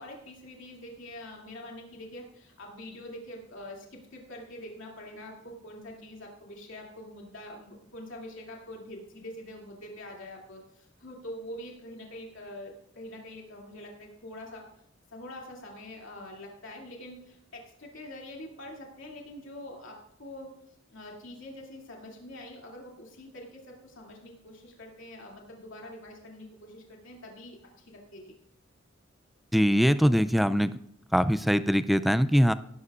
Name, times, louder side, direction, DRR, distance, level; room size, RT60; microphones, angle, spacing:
voice 1, 0.0-14.7 15.1-20.6 20.9-28.3, left 1 dB, 70° left, -1 dB, 2.6 m, -45 dB
voice 2, 29.5-30.7 31.1-32.5, equal, ahead, 13 dB, 0.3 m, -22 dB
18.0 x 11.0 x 2.4 m, 0.74 s
head